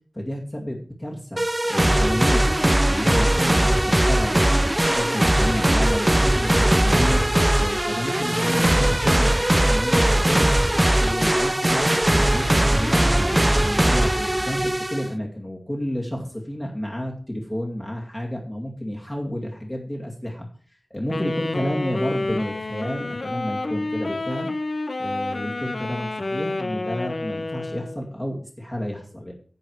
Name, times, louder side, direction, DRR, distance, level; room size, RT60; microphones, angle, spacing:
voice 1, 0.1-7.2 7.5-10.5 10.8-20.5 20.9-24.5 25.0-29.3, equal, 20° left, -2 dB, 2.4 m, -30 dB
sound 1, 1.4-15.1, right 1 dB, 20° right, 0.4 m, -20 dB
Wind instrument woodwind instrument, 21.1-28.0, left 2 dB, 60° left, 1.1 m, -29 dB
10.5 x 8.0 x 4.8 m, 0.43 s
wide cardioid pair, 70°, 0 cm